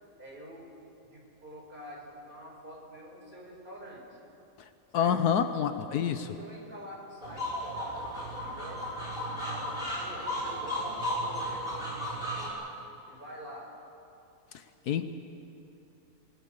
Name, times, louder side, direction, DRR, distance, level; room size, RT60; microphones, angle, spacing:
voice 1, 0.2-0.6 1.0-4.2 4.9-5.2 6.0-12.5 13.0-13.7, equal, 30° right, -3 dB, 5.7 m, -47 dB
voice 2, 4.9-6.3 14.9-15.1, left 8 dB, 75° left, 10 dB, 1.3 m, -27 dB
sound 1, 7.2-12.5, equal, 30° left, 5.5 m, -34 dB
26.5 x 19.5 x 6.8 m, 2.8 s
omnidirectional pair, 1.7 m